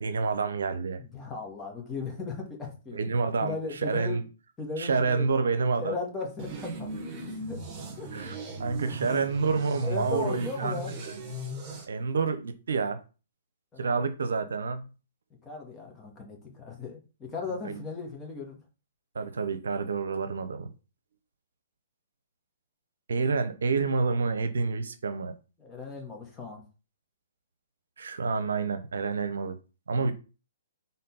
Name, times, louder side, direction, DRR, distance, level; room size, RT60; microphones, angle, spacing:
voice 1, 0.0-1.0 2.9-4.2 4.8-6.0 8.1-11.2 11.9-13.0 13.8-14.9 17.6-17.8 19.1-20.7 23.1-25.3 28.0-29.6 29.9-30.1, right 4 dB, 70° right, 0.8 m, -28 dB
voice 2, 1.0-3.0 3.4-4.2 4.6-5.2 5.8-7.0 7.2-7.6 8.0-8.1 9.8-10.9 13.7-14.0 15.4-18.6 25.6-26.6 30.0-30.1, left 4 dB, 15° left, 2.1 m, -37 dB
sound 1, 6.4-11.9, right 1 dB, 25° right, 1.8 m, -38 dB
4.4 x 3.9 x 5.5 m
figure-of-eight pair, 125°, 0 cm